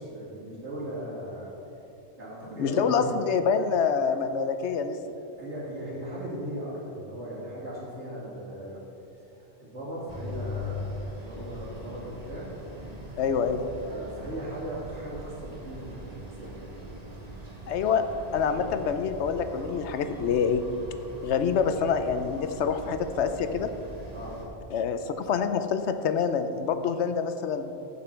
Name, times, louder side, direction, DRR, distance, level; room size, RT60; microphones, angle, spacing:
voice 1, 0.0-1.5 2.2-3.1 5.4-8.8 9.3-10.9 11.2-12.7 13.8-16.9 17.9-18.2 18.4-18.6 24.1-24.4, right 1 dB, 80° right, -7 dB, 3.1 m, -38 dB
voice 2, 2.6-5.0 13.2-13.7 17.7-18.0 18.3-20.6 21.2-23.7 24.7-27.7, left 6 dB, 80° left, 9 dB, 0.9 m, -26 dB
sound 1, 10.1-24.5, equal, 35° right, 1.4 m, -41 dB
14.5 x 5.9 x 4.4 m, 2.8 s
omnidirectional pair, 1.2 m